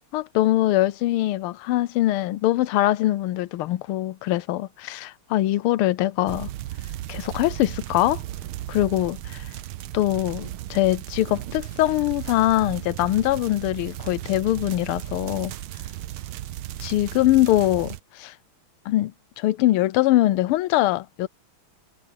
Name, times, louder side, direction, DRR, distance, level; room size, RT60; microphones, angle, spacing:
voice 1, 0.1-6.5 7.1-8.2 8.7-9.4 9.9-15.5 16.8-18.3 18.9-19.1 19.4-21.3, left 15 dB, 90° left, 1.5 m, -22 dB
sound 1, 6.3-18.0, right 14 dB, 80° right, 1.6 m, -35 dB
omnidirectional pair, 2.3 m